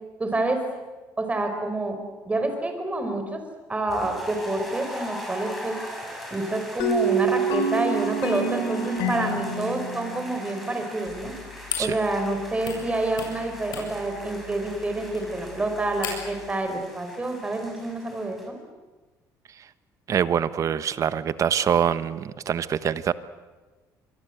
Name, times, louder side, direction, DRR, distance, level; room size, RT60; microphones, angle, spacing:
voice 1, 0.2-0.6 1.2-2.0 2.2-3.4 3.7-5.8 6.3-11.3 11.8-18.6, right 2 dB, 20° right, 6 dB, 5.3 m, -28 dB
sound 1, 3.9-18.5, equal, ahead, 7.3 m, -41 dB
sound 2, 6.8-11.5, right 3 dB, 90° left, 3.7 m, -27 dB
sound 3, 11.1-16.5, left 8 dB, 70° left, 7.8 m, -39 dB
voice 2, 20.1-23.1, right 8 dB, 50° right, 14 dB, 1.2 m, -24 dB
26.5 x 23.0 x 8.1 m, 1.3 s
cardioid pair, 100°, 7 cm